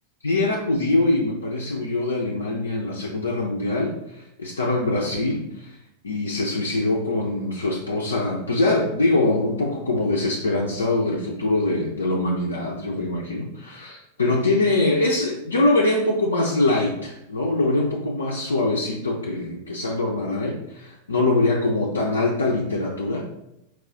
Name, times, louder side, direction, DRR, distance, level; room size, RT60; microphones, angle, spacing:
voice 1, 0.2-5.8 6.0-23.2, left 2 dB, 75° left, -2 dB, 0.5 m, -23 dB
4.6 x 2.3 x 3.7 m, 0.84 s
figure-of-eight pair, 90°, 0 cm